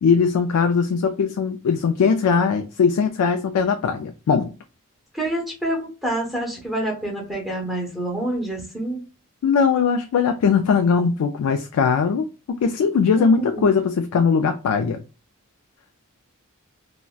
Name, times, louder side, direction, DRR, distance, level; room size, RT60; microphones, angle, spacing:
voice 1, 0.0-4.5 9.4-15.0, left 5 dB, 90° left, 0.3 m, -20 dB
voice 2, 5.1-9.0 13.2-13.6, right 1 dB, ahead, 0.9 m, -27 dB
3.9 x 2.1 x 2.3 m
head